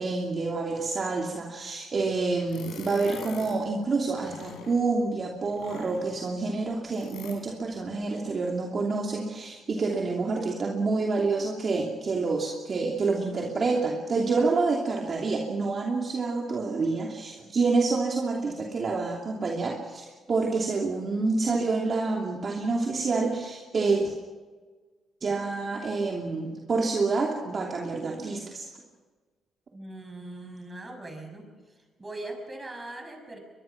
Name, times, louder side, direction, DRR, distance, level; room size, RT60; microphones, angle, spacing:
voice 1, 0.0-24.1 25.2-28.7, right 3 dB, 40° right, 0 dB, 2.8 m, -28 dB
sound 1, 2.5-3.7 4.1-4.9 5.5-6.2 6.9-7.4, left 5 dB, 85° left, 4.8 m, -43 dB
voice 2, 29.7-31.5 31.7-33.4, right 2 dB, 20° right, 4 dB, 6.6 m, -40 dB
22.5 x 22.5 x 6.0 m, 1.4 s
cardioid pair, 90°, 0 cm